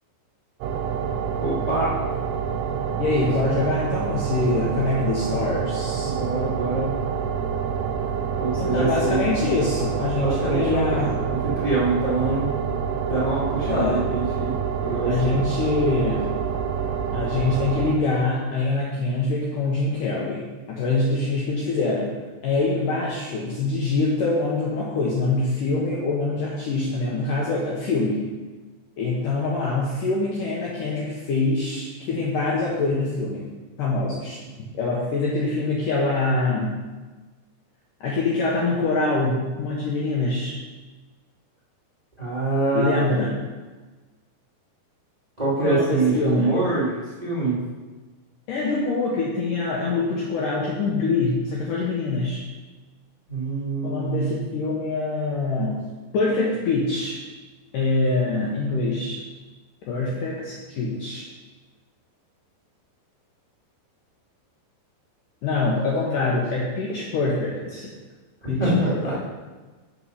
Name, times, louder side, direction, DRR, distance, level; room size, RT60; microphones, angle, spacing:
sound 1, 0.6-18.0, right 7 dB, 80° right, 2.7 m, -27 dB
voice 1, 1.4-2.0 6.0-6.9 8.3-9.3 10.1-12.5 13.1-15.4 42.2-43.1 45.4-46.9 47.2-47.6 53.3-54.4 68.6-69.2, right 2 dB, 40° right, -9 dB, 0.5 m, -25 dB
voice 2, 3.0-6.1 8.6-11.2 13.7-14.0 15.1-16.3 17.1-22.1 22.4-28.2 29.0-33.5 33.8-36.8 38.0-40.5 42.7-43.3 45.6-46.5 48.5-52.4 53.8-55.8 56.1-57.2 57.7-59.2 59.9-61.2 65.4-67.9 68.5-69.2, left 3 dB, 75° left, -4 dB, 2.0 m, -24 dB
6.8 x 6.1 x 5.6 m, 1.3 s
omnidirectional pair, 5.1 m